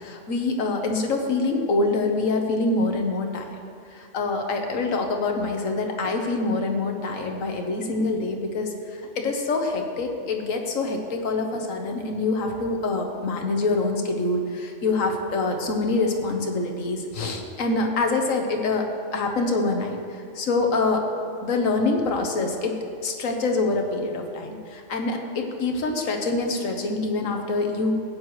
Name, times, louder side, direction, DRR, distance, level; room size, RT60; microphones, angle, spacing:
voice 1, 0.0-3.4 3.9-18.8 19.1-21.0 21.4-27.9, left 3 dB, 90° left, 3 dB, 1.5 m, -25 dB
16.5 x 9.4 x 3.2 m, 2.3 s
omnidirectional pair, 1.3 m